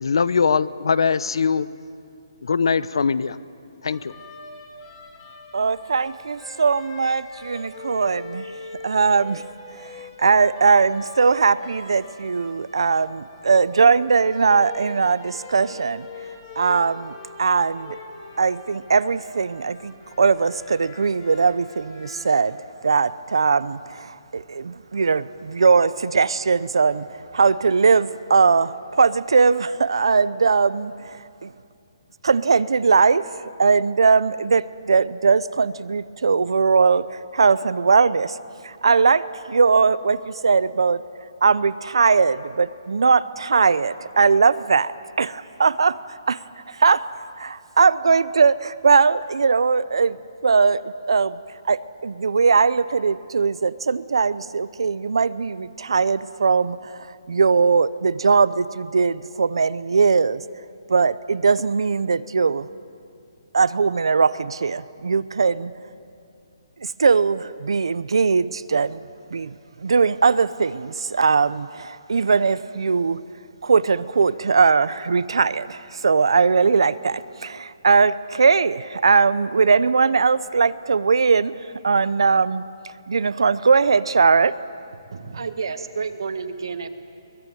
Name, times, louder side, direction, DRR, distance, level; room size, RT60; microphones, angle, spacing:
voice 1, 0.0-1.7 2.4-3.4 3.8-4.1, left 5 dB, 70° left, 18 dB, 0.8 m, -21 dB
sound 1, 3.9-22.4, left 3 dB, 20° left, 3.4 m, -43 dB
voice 2, 5.5-8.5 8.8-16.1 16.6-18.0 18.4-31.5 32.2-33.3 33.6-38.4 38.6-41.0 41.4-44.9 45.2-46.4 46.7-47.1 47.4-51.4 51.6-60.4 60.9-62.7 63.5-65.7 66.8-69.0 69.3-73.2 73.6-81.6 81.8-82.6 83.1-84.6, right 5 dB, 90° right, 16 dB, 0.7 m, -20 dB
voice 3, 85.1-86.9, right 5 dB, 65° right, 9 dB, 1.7 m, -30 dB
23.0 x 19.5 x 9.3 m, 2.4 s
hypercardioid pair, 175°, 3 cm